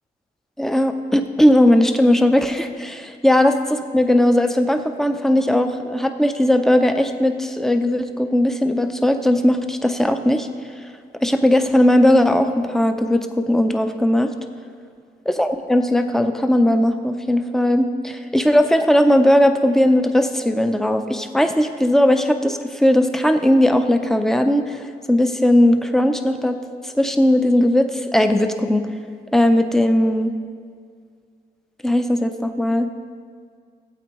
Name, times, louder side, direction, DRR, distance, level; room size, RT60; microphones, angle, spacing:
voice 1, 0.6-10.5 11.2-14.3 15.3-26.6 26.8-28.8 29.3-30.3 31.8-32.9, left 1 dB, ahead, 7 dB, 0.5 m, -18 dB
16.5 x 8.4 x 3.0 m, 2.1 s
wide cardioid pair, 140°, 18 cm